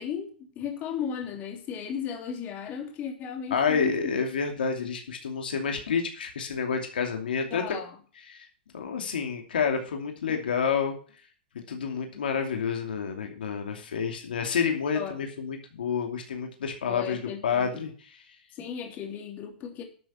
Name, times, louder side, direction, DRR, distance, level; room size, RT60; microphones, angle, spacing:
voice 1, 0.0-4.1 7.5-7.9 14.9-15.2 16.9-17.8 18.5-19.8, left 7 dB, 35° left, 3.1 m, -35 dB
voice 2, 3.5-7.8 8.3-8.5 8.7-11.0 11.5-17.9, left 6 dB, 80° left, 2.6 m, -29 dB
12.5 x 7.0 x 5.9 m
hypercardioid pair, 120°, 5 cm